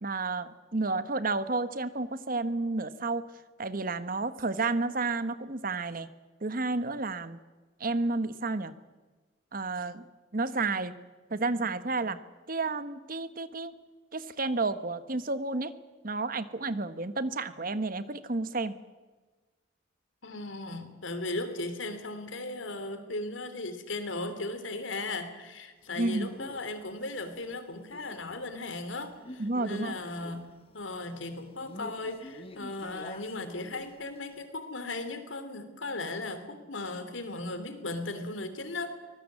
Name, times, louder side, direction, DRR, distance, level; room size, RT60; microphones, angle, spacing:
voice 1, 0.0-3.3 3.6-6.1 6.4-7.4 7.8-8.7 9.5-10.1 10.3-11.0 11.3-13.7 14.1-15.7 16.0-18.8 26.0-26.4 29.4-30.0, right 3 dB, 45° right, 13 dB, 1.1 m, -31 dB
voice 2, 20.2-30.5 30.7-39.0, left 2 dB, 85° left, 10 dB, 3.0 m, -37 dB
Male speech man speaking, 25.9-34.4, left 1 dB, 30° left, 1.3 m, -49 dB
24.5 x 19.5 x 7.4 m, 1.3 s
head